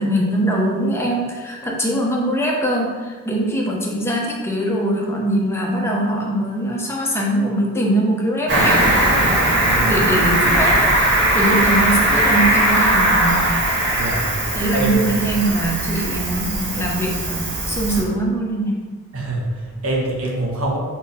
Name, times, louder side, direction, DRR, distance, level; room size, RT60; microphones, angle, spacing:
voice 1, 0.0-8.9 9.7-10.9 11.3-13.6 14.5-18.9, right 1 dB, 10° left, -2 dB, 1.0 m, -22 dB
Cricket, 8.5-18.0, right 1 dB, 55° right, 1.4 m, -19 dB
voice 2, 14.0-15.0 19.1-20.8, right 2 dB, 75° right, -1 dB, 1.3 m, -25 dB
4.4 x 4.1 x 5.6 m, 1.4 s
head